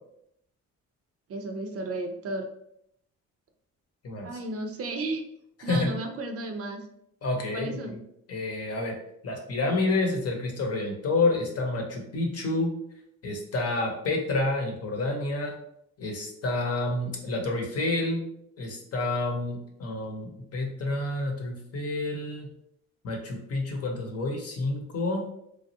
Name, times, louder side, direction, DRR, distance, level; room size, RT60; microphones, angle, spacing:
voice 1, 1.3-2.5 4.2-5.2 5.6-6.8 7.5-8.0, right 2 dB, 50° right, 5 dB, 0.5 m, -33 dB
voice 2, 5.6-5.9 7.2-8.0 8.3-9.0 9.2-12.7 13.2-15.6 16.0-18.2 18.6-22.5 23.0-25.3, left 2 dB, 50° left, 1 dB, 0.9 m, -29 dB
3.1 x 2.3 x 2.7 m, 0.75 s
cardioid pair, 90°, 30 cm